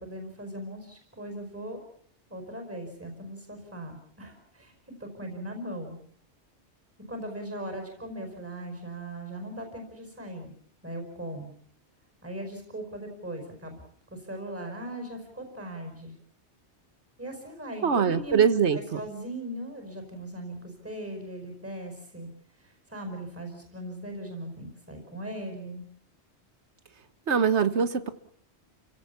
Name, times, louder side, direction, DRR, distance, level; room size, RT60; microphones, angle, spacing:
voice 1, 0.0-1.8 2.3-4.7 5.0-6.0 7.1-10.5 10.8-11.5 12.2-13.8 14.1-16.2 17.2-18.4 18.7-22.3 22.6-25.8, right 1 dB, 10° right, 4 dB, 5.1 m, -39 dB
voice 2, 17.8-19.0 27.3-28.1, right 7 dB, 75° right, 12 dB, 1.6 m, -23 dB
30.0 x 16.5 x 7.1 m, 0.64 s
omnidirectional pair, 1.2 m